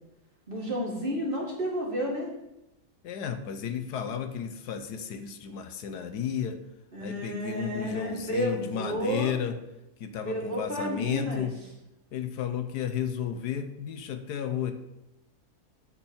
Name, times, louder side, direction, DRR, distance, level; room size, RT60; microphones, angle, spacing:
voice 1, 0.5-2.3 6.9-9.3 10.2-11.5, equal, 35° right, -3 dB, 2.2 m, -31 dB
voice 2, 3.0-6.6 7.0-9.5 10.0-11.5 12.1-14.7, left 8 dB, 75° left, 8 dB, 1.3 m, -33 dB
8.7 x 4.4 x 7.0 m, 0.90 s
omnidirectional pair, 1.8 m